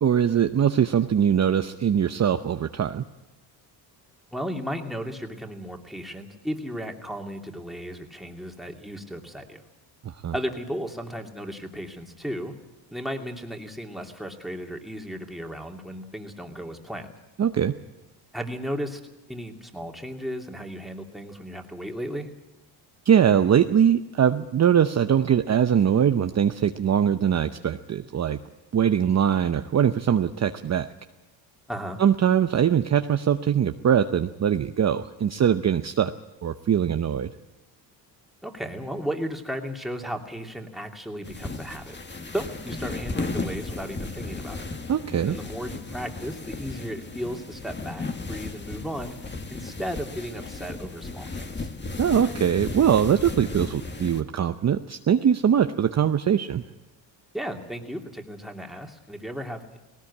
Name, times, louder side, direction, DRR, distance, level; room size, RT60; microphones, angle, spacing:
voice 1, 0.0-3.0 10.0-10.3 17.4-17.7 23.0-28.4 28.7-30.9 32.0-36.1 36.4-37.3 44.9-45.4 52.0-56.6, right 8 dB, 35° right, 8 dB, 0.8 m, -22 dB
voice 2, 4.3-9.6 10.3-12.5 12.9-17.1 18.3-19.0 19.3-22.3 31.7-32.0 38.4-42.0 42.3-44.6 45.2-49.2 49.5-51.7 57.3-59.8, equal, ahead, 2 dB, 2.7 m, -35 dB
sound 1, 41.2-54.2, left 3 dB, 25° left, 1.8 m, -35 dB
18.5 x 18.0 x 8.6 m, 1.0 s
cardioid pair, 90°, 46 cm